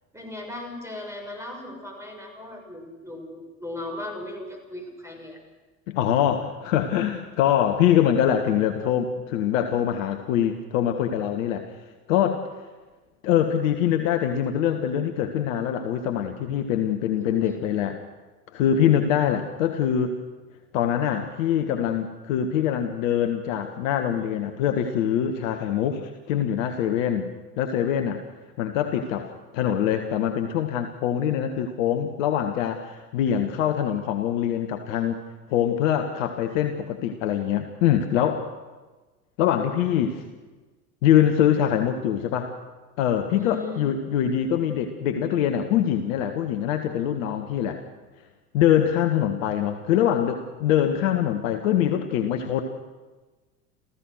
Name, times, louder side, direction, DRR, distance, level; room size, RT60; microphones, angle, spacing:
voice 1, 0.1-5.4 17.2-17.6 43.3-43.8, left 2 dB, 5° right, 3 dB, 6.3 m, -37 dB
voice 2, 5.9-11.8 12.1-12.4 13.2-18.0 18.5-20.2 20.7-28.2 28.6-35.2 35.5-38.5 39.4-40.2 41.0-42.5 43.0-47.8 48.5-52.6, left 10 dB, 60° left, 6 dB, 1.5 m, -24 dB
29.5 x 15.0 x 6.6 m, 1.3 s
figure-of-eight pair, 70°, 45 cm